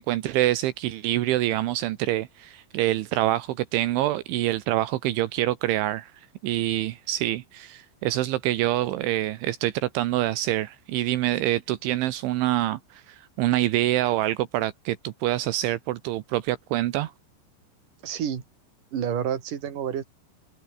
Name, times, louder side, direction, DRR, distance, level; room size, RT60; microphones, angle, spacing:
voice 1, 0.0-6.1 6.4-17.1, right 15 dB, 80° right, 3.5 m, -26 dB
voice 2, 18.0-18.4 18.9-20.0, right 9 dB, 45° right, 4.1 m, -29 dB
omnidirectional pair, 5.6 m